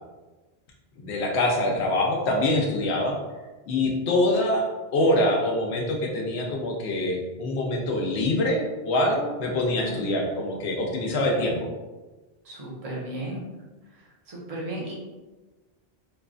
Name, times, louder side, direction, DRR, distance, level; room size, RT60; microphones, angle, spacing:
voice 1, 1.0-3.2 3.7-4.6 4.9-11.6, left 1 dB, 90° left, 0 dB, 0.9 m, -24 dB
voice 2, 12.4-13.4 14.3-14.9, right 1 dB, 40° right, -4 dB, 0.7 m, -34 dB
3.0 x 2.3 x 2.4 m, 1.2 s
omnidirectional pair, 1.1 m